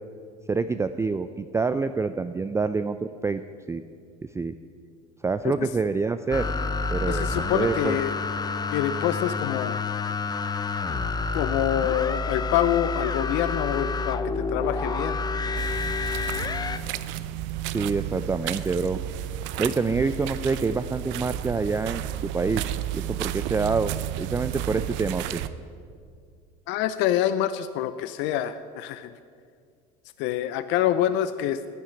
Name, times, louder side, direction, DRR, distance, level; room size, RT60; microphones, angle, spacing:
voice 1, 0.5-3.4 3.7-3.8 4.3-4.5 5.2-6.5 6.9-8.0 17.7-19.0 19.6-22.6 22.9-23.9 24.2-25.4, right 4 dB, 15° right, 10 dB, 0.4 m, -26 dB
sound 1, 6.3-16.8, left 4 dB, 20° left, 0.7 m, -28 dB
voice 2, 7.1-8.1 8.7-9.8 11.3-15.2 15.5-15.7 26.7-29.1 30.2-31.6, left 11 dB, 65° left, 13 dB, 0.6 m, -26 dB
sound 2, 15.5-25.5, right 13 dB, 65° right, 0.7 m, -32 dB
10.5 x 9.6 x 9.7 m, 2.2 s
supercardioid pair, 85°, 20 cm